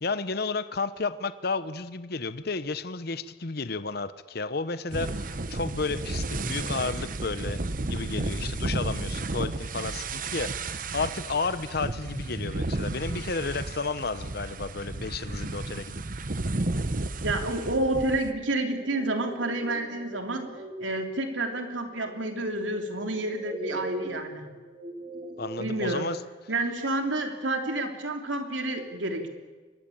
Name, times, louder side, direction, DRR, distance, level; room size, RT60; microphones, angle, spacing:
voice 1, 0.0-7.6 7.9-15.9 25.4-26.2, left 4 dB, 55° left, 13 dB, 0.9 m, -32 dB
sound 1, 4.9-18.3, right 2 dB, 45° right, 1.0 m, -32 dB
voice 2, 17.2-20.5 20.8-24.5 25.6-26.1 26.5-29.3, right 2 dB, 85° right, 5 dB, 3.3 m, -29 dB
sound 2, 18.7-26.1, right 1 dB, 30° right, 7.0 m, -41 dB
24.0 x 20.0 x 8.7 m, 1.3 s
head